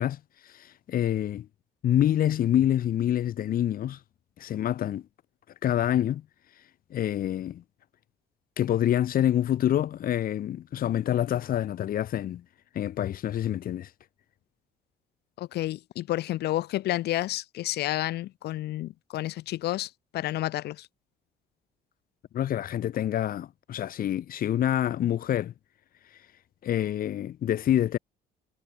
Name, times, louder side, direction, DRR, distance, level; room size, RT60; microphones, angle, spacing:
voice 1, 0.0-1.5 1.8-4.0 4.4-5.0 5.6-6.2 6.9-7.6 8.6-12.4 12.7-13.9 22.3-25.5 26.6-28.0, left 11 dB, 60° left, 3.7 m, -27 dB
voice 2, 15.4-20.9, left 15 dB, 75° left, 3.7 m, -30 dB
cardioid pair, 110°, 17 cm